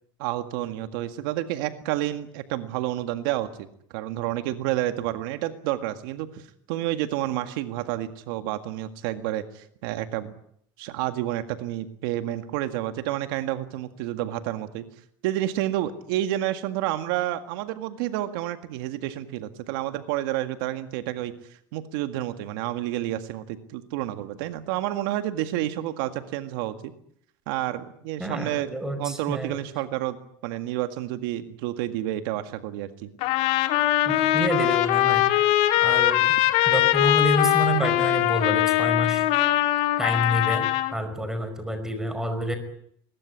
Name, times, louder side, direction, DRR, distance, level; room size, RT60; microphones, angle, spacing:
voice 1, 0.2-3.5 3.9-10.3 10.8-14.8 15.2-21.3 21.7-26.9 27.5-28.7 29.0-33.1, right 14 dB, 80° right, 9 dB, 1.9 m, -29 dB
voice 2, 28.2-29.6 34.0-35.2 35.8-36.3 36.7-39.2 40.0-40.7 40.9-42.6, equal, 5° right, 9 dB, 5.0 m, -28 dB
Trumpet, 33.2-40.9, left 14 dB, 60° left, 2.7 m, -21 dB
22.0 x 21.0 x 9.7 m, 0.68 s
cardioid pair, 140°, 12 cm